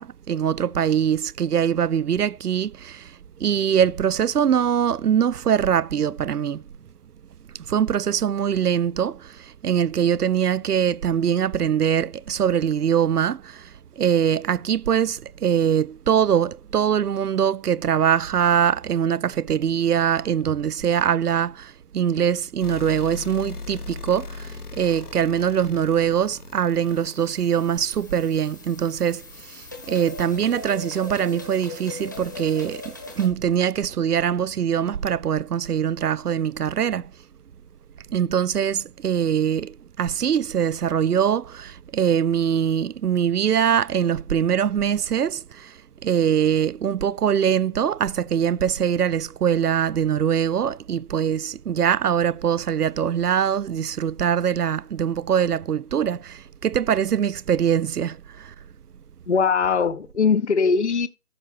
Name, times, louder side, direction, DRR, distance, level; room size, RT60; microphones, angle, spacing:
voice 1, 0.0-3.1 3.4-6.6 7.7-37.1 38.1-45.8 46.0-58.5, right 8 dB, 85° right, 0.6 m, -23 dB
sound 1, 22.6-30.2, left 4 dB, 80° left, 1.8 m, -40 dB
sound 2, 26.9-33.3, left 3 dB, 15° left, 0.9 m, -40 dB
voice 2, 59.3-61.1, left 5 dB, 50° left, 0.6 m, -20 dB
14.0 x 5.9 x 2.5 m
figure-of-eight pair, 160°, 45 cm